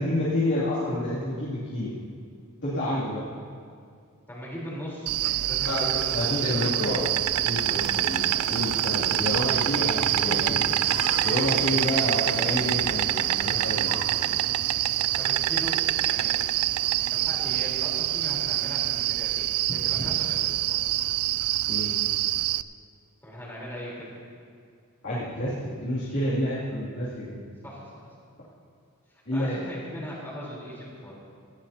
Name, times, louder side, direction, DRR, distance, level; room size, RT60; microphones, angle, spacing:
voice 1, 0.0-1.9 2.6-3.2 6.1-7.0 7.4-10.6 11.2-13.9 21.7-21.9 25.0-27.4 29.3-29.6, left 1 dB, 60° left, -10 dB, 2.8 m, -29 dB
voice 2, 4.3-6.4 11.7-12.3 15.2-16.4 17.1-20.4 20.7-20.9 23.2-24.1 27.6-28.1 29.1-31.1, equal, 10° left, -6 dB, 3.9 m, -39 dB
Insect, 5.1-22.6, right 14 dB, 90° right, 0.3 m, -26 dB
sound 1, 5.6-14.3, left 2 dB, 85° left, 1.7 m, -37 dB
sound 2, 7.5-19.2, left 1 dB, 30° left, 1.3 m, -42 dB
18.5 x 15.5 x 2.9 m, 2.2 s
head